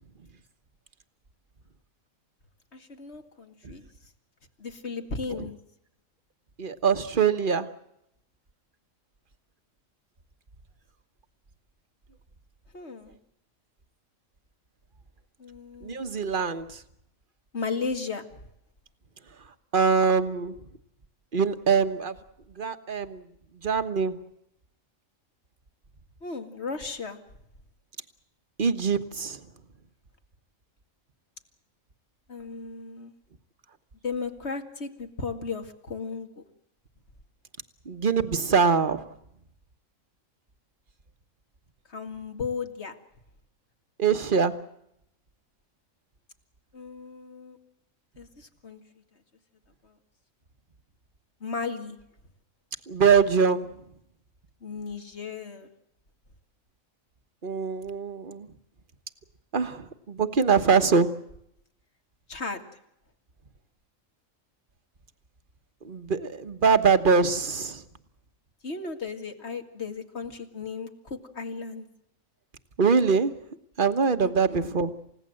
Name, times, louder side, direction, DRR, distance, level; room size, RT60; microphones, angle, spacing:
voice 1, 2.7-3.9 4.6-5.6 12.7-13.2 15.4-16.1 17.5-18.2 26.2-27.2 32.3-33.1 34.0-36.4 41.9-42.9 46.7-47.6 48.2-48.8 49.8-50.0 51.4-52.0 54.6-55.7 62.3-62.7 68.6-71.9 74.2-74.6, left 4 dB, 50° left, 6 dB, 2.4 m, -35 dB
voice 2, 6.6-7.7 15.8-16.8 19.7-20.5 21.3-22.2 22.5-23.2 23.6-24.2 28.6-29.5 37.9-39.1 44.0-44.5 52.9-53.7 57.4-58.5 59.5-61.1 65.8-67.8 72.8-73.3 73.8-74.9, right 5 dB, 40° right, 10 dB, 1.4 m, -23 dB
29.0 x 16.5 x 7.8 m, 0.78 s
omnidirectional pair, 1.4 m